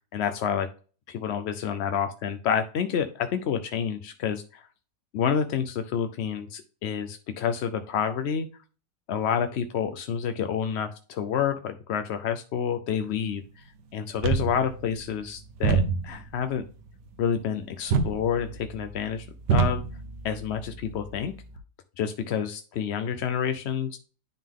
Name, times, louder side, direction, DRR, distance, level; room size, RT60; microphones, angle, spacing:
voice 1, 0.1-0.7 1.1-4.6 5.1-8.5 9.1-13.6 13.9-16.6 17.2-19.8 20.2-21.3 22.0-24.0, left 7 dB, 65° left, 8 dB, 0.6 m, -29 dB
sound 1, 14.2-21.6, right 5 dB, 85° right, 1.5 m, -30 dB
10.5 x 3.7 x 3.6 m, 0.37 s
omnidirectional pair, 1.8 m